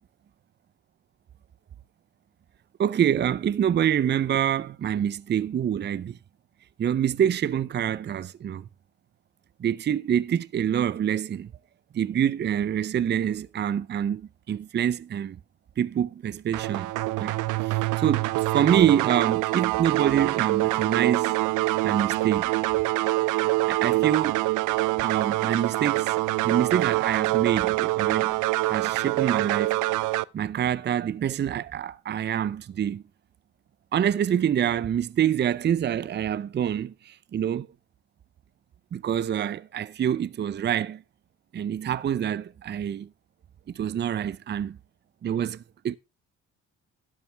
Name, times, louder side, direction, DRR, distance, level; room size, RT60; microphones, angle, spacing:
voice 1, 2.8-6.2 6.8-8.6 9.6-11.5 11.9-15.4 15.8-16.9 17.2-21.4 21.8-22.4 23.7-24.4 25.0-29.8 30.3-33.0 33.9-37.7 38.9-41.0 41.5-43.1 43.7-44.8 45.2-46.0, right 9 dB, 35° right, 0.5 m, -26 dB
sound 1, 16.5-30.2, right 19 dB, 85° right, 0.5 m, -25 dB
12.5 x 10.5 x 3.3 m
cardioid pair, 90°, 30 cm